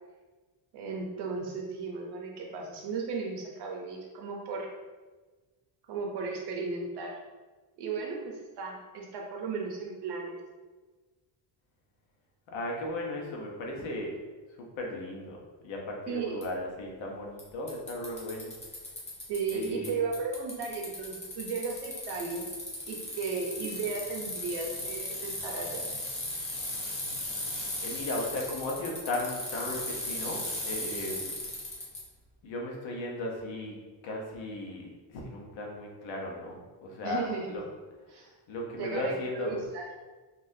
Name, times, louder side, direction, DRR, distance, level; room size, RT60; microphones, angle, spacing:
voice 1, 0.7-4.7 5.9-7.2 7.8-10.4 16.1-16.4 19.3-22.5 22.9-25.9 37.0-37.6 38.1-38.3 38.8-39.8, right 4 dB, 60° right, 0 dB, 0.7 m, -35 dB
voice 2, 12.5-14.2 14.6-18.5 19.5-20.0 27.8-31.3 32.4-33.8 34.0-37.6 38.2-39.6, left 2 dB, 80° left, -1 dB, 0.9 m, -36 dB
Bicycle, 16.4-16.5 17.4-17.5 17.7-19.9 20.1-32.0, left 1 dB, 15° left, 0.6 m, -37 dB
3.9 x 2.4 x 2.6 m, 1.3 s
cardioid pair, 180°, 46 cm